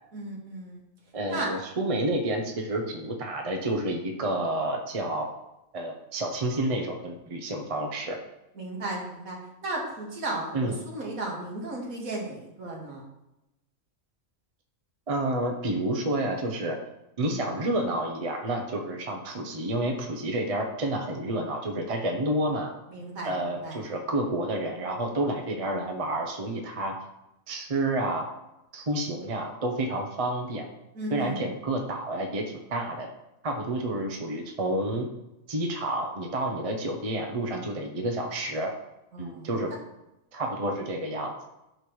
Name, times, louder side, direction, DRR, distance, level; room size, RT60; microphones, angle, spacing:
voice 1, 0.1-0.8 1.3-1.5 8.6-13.0 17.2-17.4 22.9-23.8 31.0-31.6 39.1-39.5, right 2 dB, 75° right, -2 dB, 2.1 m, -35 dB
voice 2, 1.1-5.3 5.7-8.2 10.5-10.8 15.1-16.8 17.2-22.7 23.2-27.0 27.5-28.3 28.7-30.7 31.1-32.4 32.7-33.1 33.4-35.1 35.5-38.7 39.2-39.7 40.3-41.5, right 1 dB, 30° right, 2 dB, 0.8 m, -29 dB
9.0 x 3.3 x 6.1 m, 0.92 s
omnidirectional pair, 1.5 m